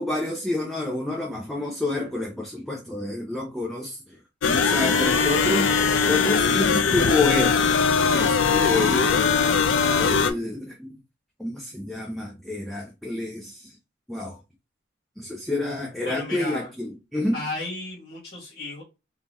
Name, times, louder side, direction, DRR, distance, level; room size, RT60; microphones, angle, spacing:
voice 1, 0.0-4.2 4.5-7.6 8.1-9.4 10.0-10.9 11.4-13.8 14.1-14.4 15.2-17.4, left 2 dB, ahead, 0.6 m, -28 dB
sound 1, 4.4-10.3, left 5 dB, 80° left, 0.5 m, -21 dB
voice 2, 16.0-16.7 17.3-18.8, left 2 dB, 55° left, 1.3 m, -33 dB
3.6 x 2.7 x 3.0 m
head